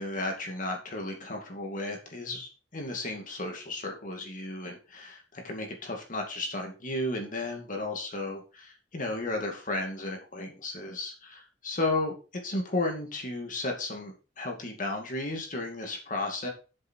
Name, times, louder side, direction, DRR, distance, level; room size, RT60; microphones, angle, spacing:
voice 1, 0.0-16.5, left 2 dB, 45° left, 2 dB, 2.4 m, -34 dB
7.6 x 7.3 x 4.5 m, 0.33 s
head